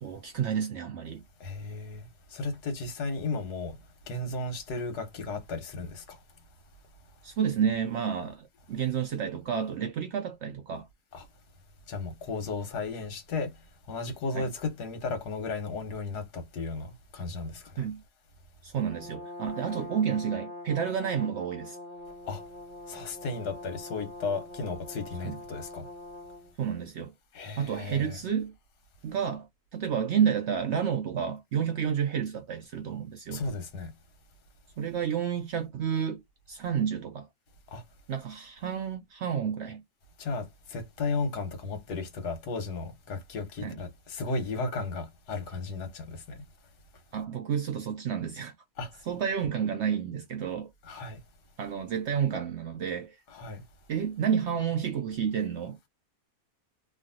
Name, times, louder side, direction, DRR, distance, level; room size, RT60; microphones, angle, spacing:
voice 1, 0.0-1.2 7.2-10.9 14.4-14.5 17.8-18.0 18.6-21.8 25.2-25.4 26.6-27.1 27.6-28.5 29.0-29.5 29.7-33.4 34.8-36.2 36.5-37.3 38.1-39.8 43.6-43.7 47.1-48.5 49.1-50.7 51.6-53.2 53.9-55.8, right 8 dB, 75° right, 0.6 m, -30 dB
voice 2, 1.4-3.7 4.1-6.2 11.1-11.3 11.9-13.5 13.9-17.9 22.3-22.4 22.9-25.9 27.3-28.2 33.3-33.9 37.7-37.8 40.2-46.4 48.8-48.9 50.8-51.2 53.3-53.6, left 3 dB, 75° left, 1.5 m, -34 dB
Brass instrument, 18.8-26.5, left 2 dB, 40° right, 0.8 m, -43 dB
3.1 x 2.4 x 2.6 m
omnidirectional pair, 1.7 m